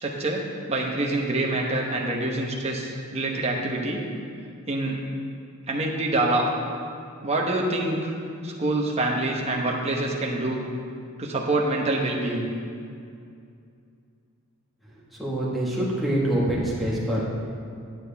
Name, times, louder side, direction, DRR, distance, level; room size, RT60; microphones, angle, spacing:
voice 1, 0.0-4.0 4.7-5.0 5.7-6.5 7.2-8.1 8.4-10.6 11.2-12.5, right 2 dB, 30° right, -2 dB, 1.1 m, -26 dB
voice 2, 15.2-17.2, right 1 dB, ahead, -7 dB, 1.7 m, -25 dB
10.5 x 9.2 x 3.5 m, 2.4 s
head